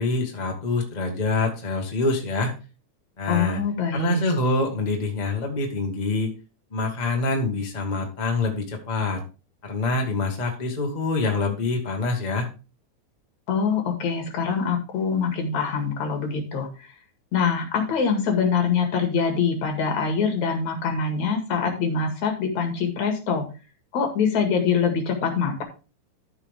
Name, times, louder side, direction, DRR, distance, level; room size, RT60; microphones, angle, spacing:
voice 1, 0.0-2.5 3.2-3.6 3.9-6.3 6.7-9.2 9.6-12.5, left 3 dB, 20° left, 2 dB, 1.0 m, -25 dB
voice 2, 3.3-4.2 13.5-16.9 17.3-23.5 23.9-25.6, left 6 dB, 60° left, 3 dB, 3.2 m, -24 dB
13.5 x 5.7 x 3.5 m, 0.33 s
omnidirectional pair, 3.9 m